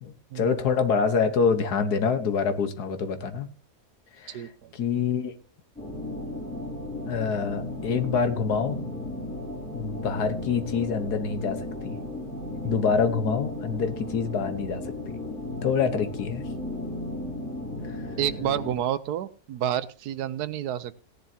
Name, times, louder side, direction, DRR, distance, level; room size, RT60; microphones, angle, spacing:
voice 1, 0.0-3.5 4.2-5.3 7.1-8.8 9.7-12.0 12.6-15.1 15.6-16.4 17.9-18.0, left 6 dB, 85° left, 9 dB, 1.7 m, -26 dB
voice 2, 4.3-4.7 18.2-21.0, right 11 dB, 85° right, 15 dB, 1.3 m, -29 dB
sound 1, 5.8-18.7, left 2 dB, 5° left, 6.5 m, -35 dB
17.0 x 10.5 x 2.8 m, 0.36 s
omnidirectional pair, 1.7 m